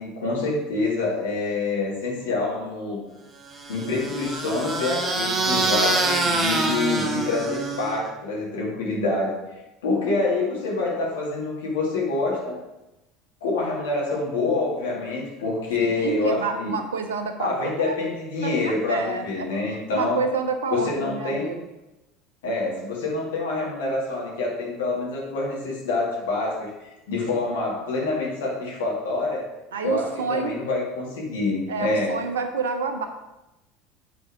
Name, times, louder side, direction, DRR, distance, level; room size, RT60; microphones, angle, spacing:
voice 1, 0.0-3.0 3.7-9.3 9.8-12.6 13.4-16.8 17.4-20.2 20.7-21.5 22.4-29.5 29.8-32.2, left 3 dB, 70° left, -4 dB, 2.4 m, -26 dB
sound 1, 3.6-8.1, right 2 dB, 25° right, 1.3 m, -25 dB
voice 2, 15.8-18.0 18.4-19.5 19.9-21.6 29.7-30.6 31.7-33.1, right 5 dB, 75° right, 6 dB, 0.6 m, -28 dB
8.7 x 4.5 x 5.0 m, 0.97 s
figure-of-eight pair, 70°, 0 cm